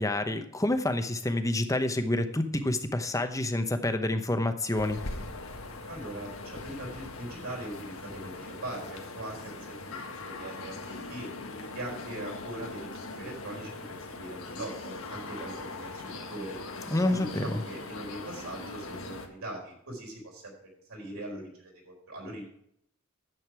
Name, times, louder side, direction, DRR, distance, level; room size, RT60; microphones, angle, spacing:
voice 1, 0.0-5.0 16.9-17.5, left 1 dB, 15° left, 8 dB, 0.8 m, -28 dB
sound 1, 4.7-19.3, left 3 dB, 65° left, 1.6 m, -41 dB
voice 2, 5.9-11.3 11.7-16.6 17.1-20.5 20.9-22.4, right 1 dB, 75° right, -1 dB, 4.4 m, -41 dB
10.5 x 8.0 x 4.7 m, 0.72 s
head